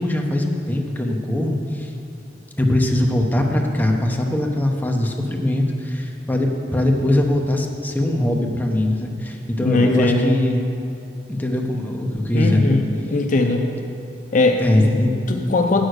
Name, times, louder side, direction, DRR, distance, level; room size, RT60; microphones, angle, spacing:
voice 1, 0.0-1.9 2.6-10.6 11.3-12.7 14.6-15.1, left 1 dB, 10° left, 1 dB, 0.8 m, -21 dB
voice 2, 9.6-10.4 12.3-13.7 14.3-14.9 15.3-15.9, left 2 dB, 45° left, 4 dB, 0.6 m, -20 dB
8.7 x 6.5 x 6.5 m, 2.5 s
head